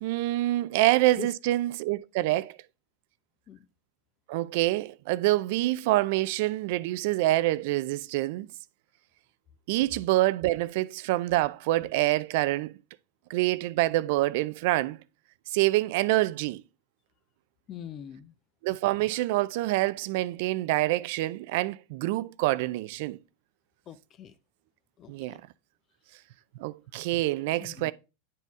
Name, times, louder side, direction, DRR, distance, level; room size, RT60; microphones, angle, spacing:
voice 1, 0.0-2.6 4.3-8.5 9.7-12.7 13.3-15.0 15.5-16.6 18.6-23.2 25.1-25.4 26.6-27.9, right 17 dB, 65° right, 0.3 m, -26 dB
voice 2, 17.7-18.3 23.9-24.3 25.0-25.4 27.6-27.9, left 9 dB, 35° left, 0.6 m, -43 dB
9.6 x 4.1 x 3.6 m
hypercardioid pair, 105°, 0 cm